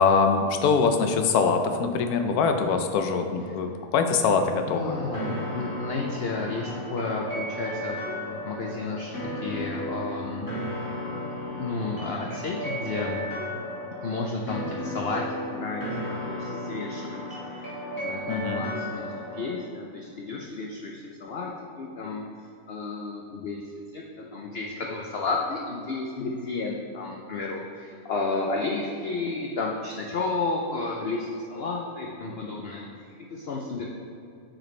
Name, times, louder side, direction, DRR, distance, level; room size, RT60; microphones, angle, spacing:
voice 1, 0.0-5.0 18.3-18.6, left 5 dB, 85° left, 6 dB, 1.1 m, -23 dB
voice 2, 4.7-10.5 11.1-13.2 14.0-17.2 17.5-22.2 22.7-23.6 23.9-33.9, left 3 dB, 60° left, 0 dB, 0.6 m, -32 dB
sound 1, 4.9-19.6, left 1 dB, 15° left, 1.2 m, -34 dB
8.6 x 5.1 x 3.1 m, 2.5 s
omnidirectional pair, 1.6 m